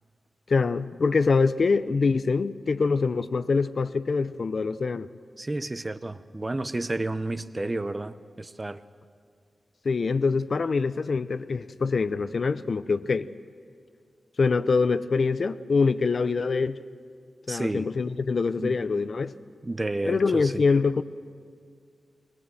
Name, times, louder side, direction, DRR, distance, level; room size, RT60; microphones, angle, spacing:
voice 1, 0.5-5.1 9.8-13.3 14.4-16.8 17.5-19.3 20.1-21.0, left 4 dB, 55° left, 13 dB, 0.5 m, -24 dB
voice 2, 5.4-8.8 17.5-17.9 18.6-18.8 19.6-20.6, right 2 dB, 25° right, 12 dB, 0.7 m, -31 dB
21.0 x 20.0 x 7.6 m, 2.1 s
wide cardioid pair, 115°, 0 cm